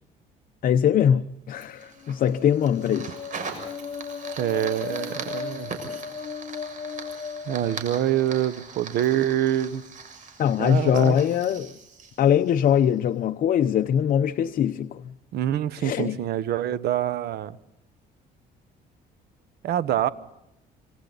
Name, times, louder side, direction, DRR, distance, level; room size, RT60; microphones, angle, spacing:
voice 1, 0.6-3.1 10.4-11.7 12.2-15.1 15.8-16.2, left 9 dB, 55° left, 0.9 m, -22 dB
Fire, 1.6-13.0, right 5 dB, 50° right, 6.9 m, -41 dB
sound 1, 1.7-8.5, left 6 dB, 40° left, 1.2 m, -37 dB
voice 2, 4.4-5.7 7.5-9.8 10.6-11.2 15.3-17.6 19.6-20.1, right 12 dB, 70° right, 1.2 m, -25 dB
27.0 x 26.5 x 4.1 m
cardioid pair, 110°, 17 cm